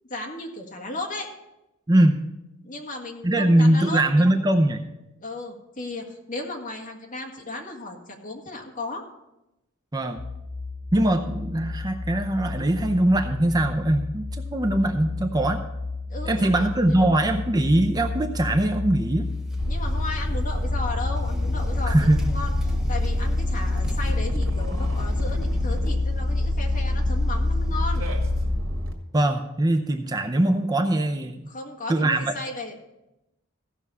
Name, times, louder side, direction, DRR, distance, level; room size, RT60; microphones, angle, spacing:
voice 1, 0.1-1.3 2.6-4.2 5.2-9.0 16.1-17.3 19.7-22.5 22.9-28.1 31.5-32.8, left 2 dB, 40° left, 2 dB, 1.7 m, -35 dB
voice 2, 1.9-2.3 3.2-4.8 9.9-10.2 10.9-15.6 16.3-19.3 21.9-22.3 29.1-31.5 31.9-32.3, right 1 dB, 20° right, 4 dB, 0.6 m, -21 dB
sound 1, 10.2-28.6, left 3 dB, 85° left, 2.1 m, -29 dB
sound 2, 19.2-20.8 21.2-24.3 24.6-28.4, equal, 5° right, 1.2 m, -46 dB
sound 3, 19.6-28.9, equal, 70° right, 2.0 m, -28 dB
15.5 x 6.1 x 5.5 m, 0.91 s
head